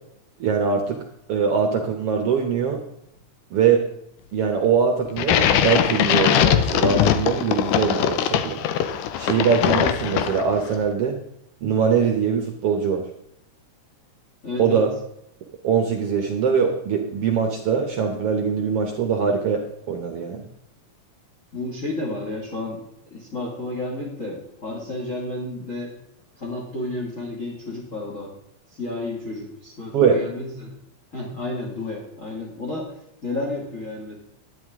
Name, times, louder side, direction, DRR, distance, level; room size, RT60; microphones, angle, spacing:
voice 1, 0.4-1.0 1.3-2.8 3.5-3.8 4.3-8.6 9.2-11.2 11.6-13.0 14.6-14.9 15.6-20.5 29.9-30.2, right 6 dB, 65° right, 3 dB, 1.6 m, -22 dB
sound 1, 5.2-10.7, left 10 dB, 85° left, 2.3 m, -21 dB
voice 2, 14.4-14.9 21.5-22.8 23.1-25.9 26.4-28.3 28.7-30.7 31.1-34.2, left 2 dB, 30° left, -2 dB, 2.1 m, -31 dB
11.0 x 11.0 x 3.6 m, 0.78 s
omnidirectional pair, 3.6 m